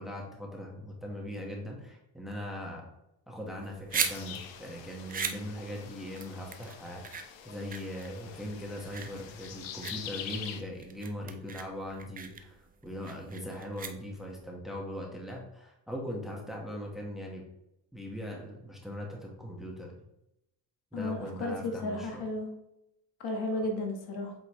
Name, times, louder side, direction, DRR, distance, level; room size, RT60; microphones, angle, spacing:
voice 1, 0.0-2.8 3.3-7.0 7.4-12.6 12.8-17.4 17.9-19.9 20.9-22.2 23.5-23.6, equal, ahead, -1 dB, 1.2 m, -40 dB
sound 1, 3.5-14.4, right 6 dB, 20° right, 0.4 m, -39 dB
sound 2, 3.9-10.6, left 9 dB, 80° left, 0.9 m, -45 dB
voice 2, 20.9-22.5 23.2-24.3, left 2 dB, 60° left, 3 dB, 1.3 m, -33 dB
8.0 x 4.0 x 3.0 m, 0.88 s
cardioid pair, 125°, 44 cm